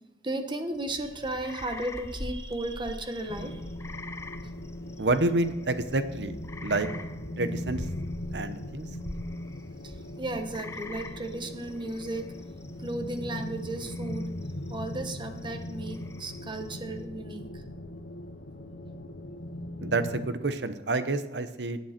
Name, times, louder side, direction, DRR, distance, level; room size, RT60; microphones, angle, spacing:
voice 1, 0.2-3.6 9.8-12.3 12.8-14.3 14.7-17.6, right 1 dB, 25° right, 7 dB, 1.3 m, -35 dB
sound 1, 0.7-17.0, left 2 dB, 15° left, 0.6 m, -44 dB
sound 2, 3.3-20.3, left 1 dB, 85° left, 0.9 m, -39 dB
voice 2, 5.0-6.9 7.4-7.9 8.3-8.9 19.8-21.8, right 2 dB, 80° right, 11 dB, 0.9 m, -28 dB
17.5 x 9.4 x 4.4 m, 1.0 s
head